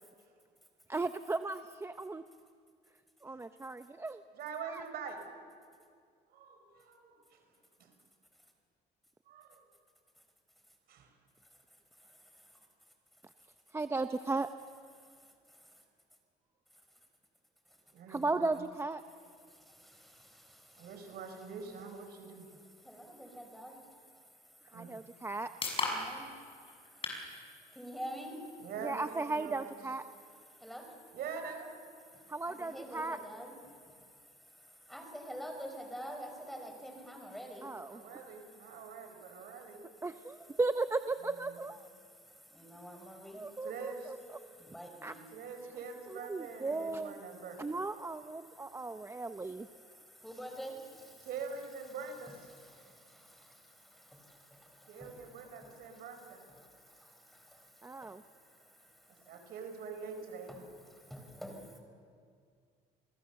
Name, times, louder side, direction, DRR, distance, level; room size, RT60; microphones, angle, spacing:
voice 1, 0.9-2.2 3.2-4.2 4.7-4.8 13.7-14.5 18.1-19.0 24.7-25.5 28.8-30.0 32.3-33.2 37.6-38.0 40.0-41.8 43.3-44.2 45.0-45.1 46.1-47.1 47.6-49.7 57.8-58.2, right 3 dB, 15° right, 9 dB, 0.7 m, -36 dB
voice 2, 4.3-5.2 6.3-7.4 7.8-7.9 9.3-9.6 10.9-11.1 17.9-18.6 20.8-22.5 24.7-24.9 28.6-29.8 31.1-31.7 37.9-39.9 43.6-44.1 45.3-47.6 51.2-52.5 54.9-56.4 59.3-60.5, right 5 dB, 70° right, 5 dB, 4.9 m, -44 dB
voice 3, 12.0-12.6 15.1-15.8 19.5-21.2 22.5-23.9 24.7-25.3 25.8-28.7 30.5-31.1 32.0-38.8 39.5-39.6 42.0-43.7 44.4-45.4 48.5-51.3 52.3-59.5 60.5-61.8, equal, ahead, 3 dB, 5.3 m, -49 dB
sound 1, 24.9-38.8, left 3 dB, 35° left, 6.5 m, -46 dB
28.5 x 21.5 x 7.1 m, 2.2 s
cardioid pair, 110°, 17 cm